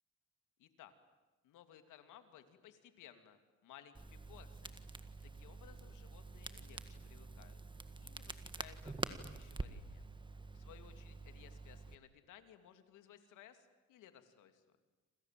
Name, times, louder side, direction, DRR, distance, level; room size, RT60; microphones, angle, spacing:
voice 1, 0.6-0.9 1.4-4.9 5.2-7.6 8.0-10.1 10.5-14.6, left 10 dB, 90° left, 9 dB, 2.7 m, -60 dB
Crackle, 3.9-11.9, right 3 dB, 15° right, 1.7 m, -47 dB
28.0 x 27.5 x 7.7 m, 1.2 s
cardioid pair, 90°, 30 cm